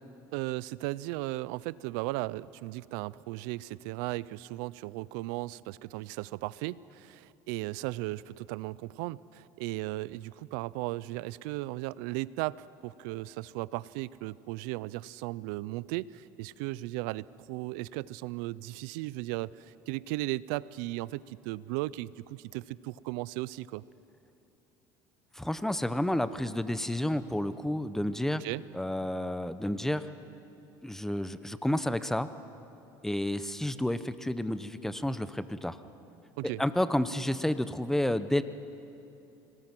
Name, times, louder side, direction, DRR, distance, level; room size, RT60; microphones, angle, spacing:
voice 1, 0.3-23.8 28.4-28.6 36.4-36.6, right 18 dB, 85° right, 20 dB, 0.5 m, -36 dB
voice 2, 25.3-28.4 28.7-30.0 30.8-32.3 33.0-35.8 36.4-38.4, left 1 dB, 5° left, 13 dB, 0.8 m, -30 dB
25.5 x 19.5 x 6.1 m, 2.9 s
supercardioid pair, 110°, 10 cm